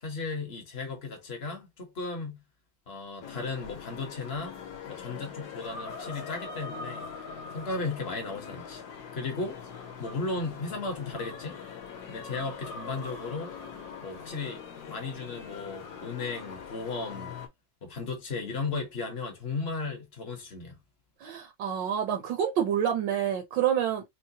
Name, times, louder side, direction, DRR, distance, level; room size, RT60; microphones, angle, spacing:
voice 1, 0.0-2.4 2.9-4.6 4.9-7.1 7.5-8.8 9.1-9.6 10.0-11.6 12.1-13.5 14.0-14.6 14.9-17.4 17.8-20.8, left 3 dB, 45° left, 0.9 m, -35 dB
sound 1, 3.2-17.5, left 5 dB, 65° left, 1.3 m, -42 dB
voice 2, 21.2-24.0, right 9 dB, 75° right, 1.3 m, -28 dB
4.5 x 2.1 x 2.7 m
omnidirectional pair, 2.0 m